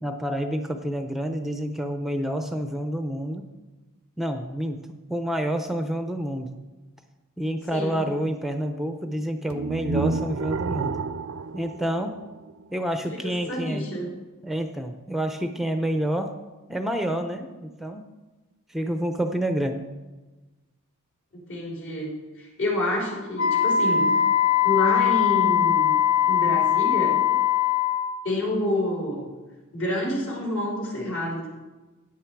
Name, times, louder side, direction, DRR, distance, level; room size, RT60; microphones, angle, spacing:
voice 1, 0.0-3.4 4.2-4.8 5.1-6.6 7.4-11.1 11.5-12.2 12.7-14.0 14.4-16.3 16.7-18.0 18.7-19.9, equal, ahead, 6 dB, 0.6 m, -28 dB
voice 2, 7.7-8.1 13.1-14.1 21.3-22.1 22.4-24.2 24.6-26.0 26.3-27.1 28.2-29.3 29.7-31.5, left 1 dB, 65° left, -3 dB, 4.8 m, -28 dB
sound 1, 9.5-12.7, right 4 dB, 75° right, 0.5 m, -30 dB
Wind instrument woodwind instrument, 23.4-28.2, left 10 dB, 85° left, 1.5 m, -21 dB
15.0 x 9.5 x 4.7 m, 1.2 s
head